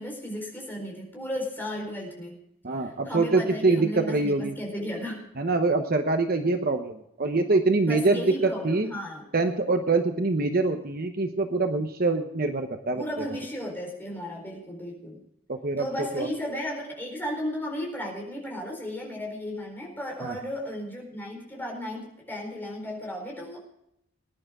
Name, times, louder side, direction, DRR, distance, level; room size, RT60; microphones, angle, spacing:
voice 1, 0.0-2.3 2.8-5.3 7.8-9.3 12.9-15.2 15.8-23.6, equal, 10° left, 0 dB, 4.2 m, -35 dB
voice 2, 2.6-4.6 5.4-8.9 9.3-13.0 15.5-15.9 16.1-16.3 20.2-20.4, right 3 dB, 45° right, 6 dB, 0.9 m, -24 dB
20.0 x 10.5 x 3.7 m, 0.77 s
head